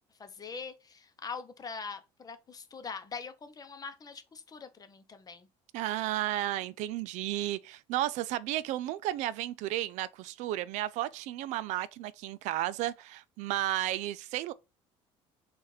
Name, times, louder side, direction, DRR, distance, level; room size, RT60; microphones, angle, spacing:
voice 1, 0.2-5.5, left 5 dB, 30° left, 0.8 m, -43 dB
voice 2, 5.7-14.5, right 14 dB, 75° right, 0.4 m, -33 dB
4.1 x 2.5 x 4.8 m
supercardioid pair, 95°, 13 cm